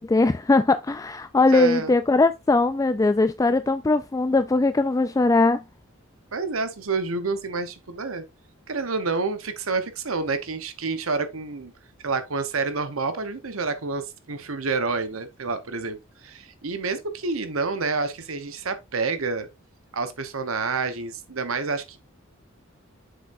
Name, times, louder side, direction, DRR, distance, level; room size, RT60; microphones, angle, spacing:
voice 1, 0.0-5.6, left 3 dB, 15° left, 0.3 m, -20 dB
voice 2, 1.5-1.9 6.3-8.2 8.7-11.7 12.0-19.5 19.9-22.0, right 4 dB, 90° right, 1.1 m, -28 dB
7.2 x 7.0 x 2.6 m
head